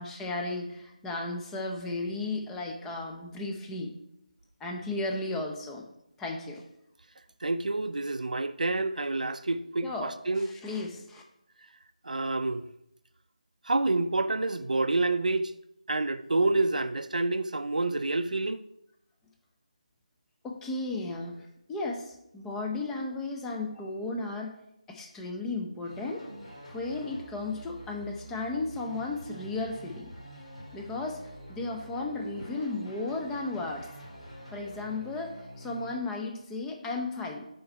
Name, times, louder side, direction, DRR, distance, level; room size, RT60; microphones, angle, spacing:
voice 1, 0.0-4.0 4.6-5.9 6.2-6.6 9.8-10.1 10.4-11.2 20.4-24.5 24.9-26.3 26.7-30.1 30.7-33.9 34.5-37.5, left 2 dB, 5° left, 0.5 m, -34 dB
voice 2, 7.4-10.5 12.0-12.7 13.6-15.5 15.9-18.6, right 2 dB, 75° right, 0.4 m, -28 dB
sound 1, 25.8-35.9, right 1 dB, 55° left, 2.5 m, -46 dB
5.5 x 4.5 x 5.3 m
figure-of-eight pair, 160°, 4 cm